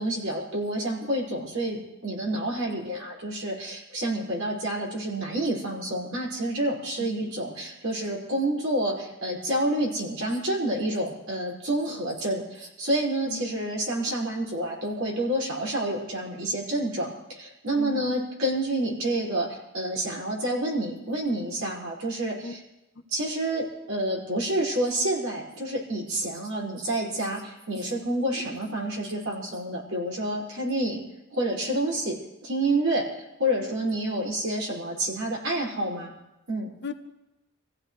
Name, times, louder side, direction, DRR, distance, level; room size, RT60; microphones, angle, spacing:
voice 1, 0.0-22.6 23.1-31.0 31.3-32.2 32.4-36.1 36.5-36.7, right 1 dB, 70° right, -4 dB, 5.6 m, -28 dB
voice 2, 13.3-13.6 17.8-18.2 22.4-22.5 27.9-28.0 36.8-36.9, left 4 dB, 50° left, 7 dB, 0.9 m, -37 dB
26.5 x 15.5 x 3.3 m, 0.95 s
head